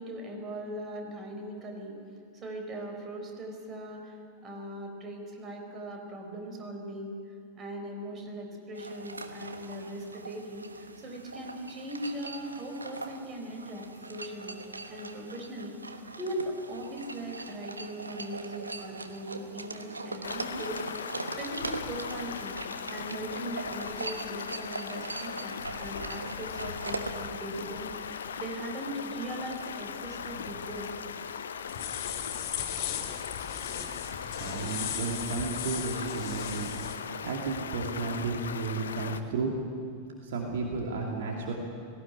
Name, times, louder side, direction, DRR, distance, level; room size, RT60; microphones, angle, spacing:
voice 1, 0.0-2.0 2.3-4.2 4.4-7.2 7.6-14.6 14.9-22.6 22.9-30.9, right 1 dB, 25° right, 3 dB, 4.5 m, -39 dB
sound 1, 8.8-27.2, right 3 dB, 80° right, 1.2 m, -41 dB
Stream, 20.2-39.2, left 7 dB, 65° left, 0.8 m, -39 dB
sound 2, 31.7-37.0, left 9 dB, 45° left, 3.0 m, -37 dB
voice 2, 34.3-36.8 37.2-39.5 40.2-41.5, right 4 dB, 55° right, 0 dB, 2.6 m, -33 dB
18.0 x 17.5 x 10.0 m, 2.3 s
figure-of-eight pair, 90°, 0 cm